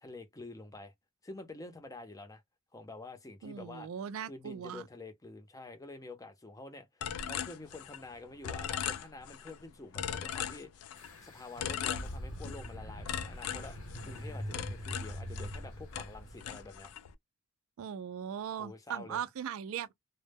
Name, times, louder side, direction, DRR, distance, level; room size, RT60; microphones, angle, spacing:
voice 1, 0.0-0.9 1.2-2.4 2.7-3.9 4.3-10.9 11.2-16.9 18.6-19.2, left 2 dB, 15° left, 0.5 m, -48 dB
voice 2, 3.4-4.8 17.8-19.9, right 8 dB, 65° right, 0.3 m, -39 dB
sound 1, 7.0-8.1 8.4-9.6 9.9-11.1 11.6-12.7 13.1-15.7 15.9-17.1, left 9 dB, 80° left, 0.3 m, -39 dB
sound 2, 11.0-16.9, equal, 65° left, 0.8 m, -43 dB
2.0 x 2.0 x 3.3 m
head